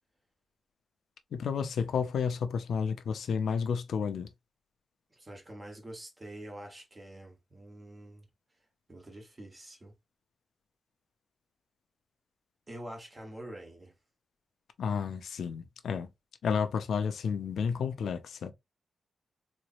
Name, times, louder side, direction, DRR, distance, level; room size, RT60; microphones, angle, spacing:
voice 1, 1.3-4.3 14.8-16.1 16.4-18.5, left 6 dB, 85° left, 0.6 m, -31 dB
voice 2, 5.1-8.2 8.9-9.9 12.7-13.9, right 1 dB, 20° right, 1.2 m, -46 dB
4.0 x 3.2 x 2.5 m
wide cardioid pair, 160°, 0 cm